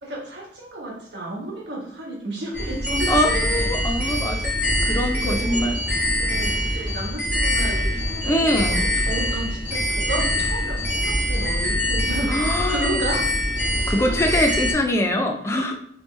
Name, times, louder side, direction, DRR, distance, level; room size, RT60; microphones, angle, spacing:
voice 1, 0.0-3.7 4.0-4.3 5.1-5.7 6.1-13.2 14.1-14.2 15.4-15.7, right 1 dB, 70° right, -3 dB, 1.2 m, -32 dB
sound 1, 2.5-14.7, equal, 10° right, 1.2 m, -24 dB
voice 2, 3.1-4.5 4.8-5.8 8.2-8.8 12.3-12.9 13.9-15.7, left 1 dB, 15° left, 3 dB, 0.3 m, -23 dB
3.1 x 2.8 x 3.2 m, 0.67 s
head